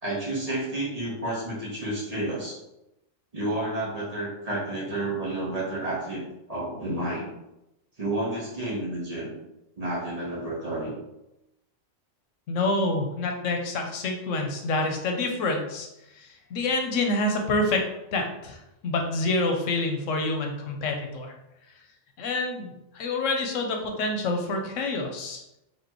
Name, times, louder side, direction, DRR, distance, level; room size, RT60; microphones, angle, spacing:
voice 1, 0.0-2.6 3.3-7.3 8.0-9.3 9.8-10.9, right 1 dB, 35° right, -4 dB, 0.9 m, -30 dB
voice 2, 12.5-15.9 16.2-17.8 18.1-18.6 18.8-21.3 22.2-25.4, left 2 dB, 80° left, 3 dB, 1.0 m, -27 dB
4.3 x 2.8 x 2.9 m, 0.90 s
omnidirectional pair, 1.3 m